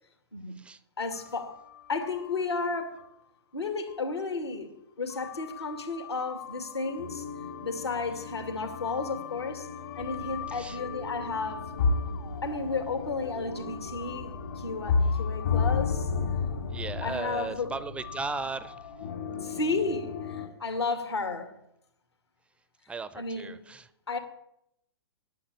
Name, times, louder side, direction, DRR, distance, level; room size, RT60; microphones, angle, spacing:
voice 1, 1.0-1.5 1.9-3.0 3.5-7.3 7.6-9.7 9.9-11.8 12.4-16.1 17.0-17.7 19.4-21.5 23.1-23.7 24.1-24.2, left 4 dB, 80° left, 2.5 m, -33 dB
sound 1, 1.1-2.7 3.0-3.1 3.9-4.0 5.1-20.5, left 5 dB, 60° left, 2.7 m, -33 dB
voice 2, 10.5-10.8 16.7-18.9 22.9-23.9, right 4 dB, 10° right, 0.4 m, -36 dB
10.5 x 8.7 x 8.3 m
figure-of-eight pair, 115°, 14 cm